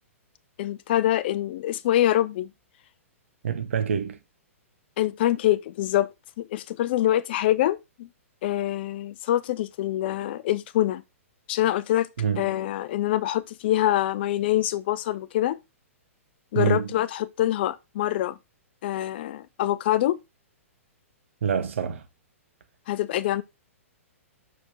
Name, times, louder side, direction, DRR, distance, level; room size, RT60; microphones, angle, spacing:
voice 1, 0.6-2.5 5.0-6.1 6.4-8.1 8.4-11.0 11.5-12.1 12.4-15.6 16.5-18.4 18.8-20.2 22.9-23.4, left 13 dB, 45° left, 0.5 m, -25 dB
voice 2, 3.4-4.2 12.2-12.5 16.5-16.9 21.4-22.1, right 7 dB, 60° right, 0.9 m, -26 dB
6.0 x 5.0 x 3.5 m
figure-of-eight pair, 110°, 8 cm